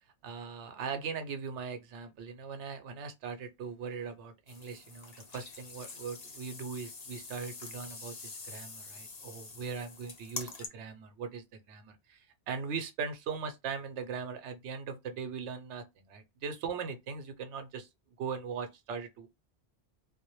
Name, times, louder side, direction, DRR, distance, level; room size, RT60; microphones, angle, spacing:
voice 1, 0.2-17.9 18.2-19.3, right 5 dB, 85° right, 0.9 m, -40 dB
sound 1, 4.5-10.7, left 4 dB, 45° left, 0.6 m, -46 dB
2.2 x 2.0 x 2.9 m
omnidirectional pair, 1.2 m